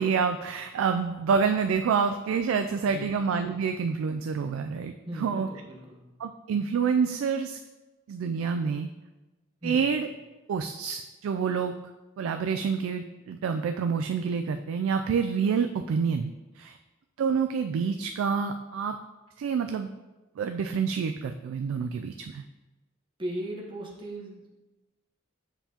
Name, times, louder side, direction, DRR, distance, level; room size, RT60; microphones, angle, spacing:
voice 1, 0.0-5.5 6.2-7.6 8.1-8.9 9.6-10.1 10.5-11.7 12.2-16.8 17.2-19.0 19.4-19.9 20.4-22.4, right 6 dB, 85° right, 7 dB, 0.3 m, -27 dB
voice 2, 5.1-6.0 9.6-9.9 23.2-24.5, right 1 dB, 25° right, -3 dB, 1.0 m, -37 dB
7.0 x 5.5 x 2.8 m, 1.1 s
head